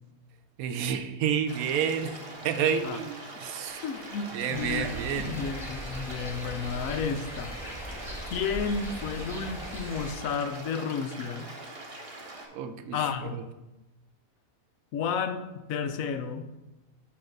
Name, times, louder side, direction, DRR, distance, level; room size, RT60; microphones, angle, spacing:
voice 1, 0.6-2.2 2.4-3.8 4.3-5.4 12.5-13.0 13.3-13.4, right 7 dB, 80° right, 9 dB, 1.1 m, -29 dB
sound 1, 1.5-12.5, right 2 dB, 45° right, 1.3 m, -43 dB
voice 2, 3.8-7.6 8.3-11.5 12.9-13.4 14.9-16.5, left 6 dB, 75° left, 9 dB, 1.0 m, -32 dB
sound 2, 4.5-10.1, equal, ahead, 1.6 m, -39 dB
8.4 x 3.1 x 6.4 m, 1.0 s
omnidirectional pair, 1.5 m